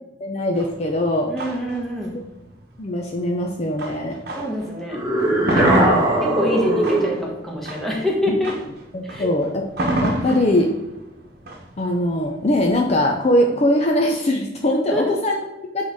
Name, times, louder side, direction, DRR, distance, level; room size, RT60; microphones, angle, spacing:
voice 1, 0.2-1.3 2.8-4.2 5.6-6.1 8.3-8.4 8.9-10.7 11.8-15.9, left 1 dB, 35° left, 1 dB, 0.6 m, -21 dB
sound 1, 0.5-4.7 5.1-13.0, right 1 dB, 60° right, 1.0 m, -29 dB
voice 2, 1.3-2.1 4.4-5.0 5.5-8.5 9.0-9.3 14.9-15.1, left 1 dB, ahead, -2 dB, 1.3 m, -26 dB
sound 2, 4.9-7.2, right 1 dB, 20° right, 1.8 m, -19 dB
7.5 x 3.8 x 3.5 m, 0.94 s
head